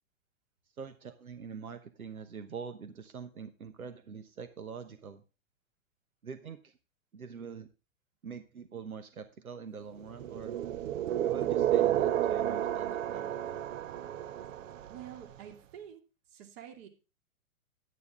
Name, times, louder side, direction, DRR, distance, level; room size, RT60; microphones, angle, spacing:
voice 1, 0.8-5.2 6.2-6.8 7.1-7.7 8.2-10.6 11.2-13.6, right 6 dB, 90° right, 10 dB, 1.1 m, -44 dB
sound 1, 10.2-15.1, right 12 dB, 65° right, 0.7 m, -31 dB
voice 2, 14.9-16.0 16.3-16.9, right 10 dB, 45° right, 4 dB, 2.5 m, -48 dB
10.5 x 9.4 x 3.6 m, 0.31 s
hypercardioid pair, 115°, 42 cm